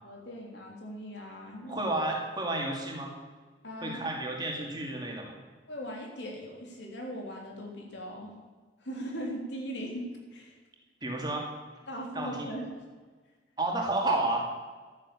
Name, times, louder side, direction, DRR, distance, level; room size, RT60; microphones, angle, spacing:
voice 1, 0.0-1.9 3.6-4.0 5.7-8.4 8.8-10.5 11.9-12.7, equal, 75° left, 0 dB, 3.4 m, -39 dB
voice 2, 1.7-3.1 3.8-5.4 11.0-11.5 12.1-12.5 13.6-14.4, right 2 dB, 25° right, 0 dB, 2.4 m, -31 dB
12.0 x 10.0 x 7.0 m, 1.4 s
head